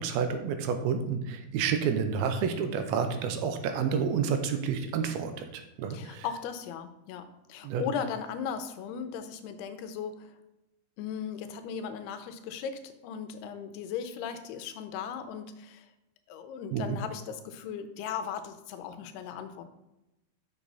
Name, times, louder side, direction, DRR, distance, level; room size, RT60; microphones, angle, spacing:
voice 1, 0.0-6.3 7.6-7.8 16.7-17.0, right 6 dB, 80° right, 7 dB, 2.5 m, -29 dB
voice 2, 5.9-10.4 11.0-15.9 16.3-19.7, left 7 dB, 90° left, 9 dB, 2.8 m, -37 dB
7.1 x 6.8 x 4.0 m, 0.95 s
omnidirectional pair, 4.5 m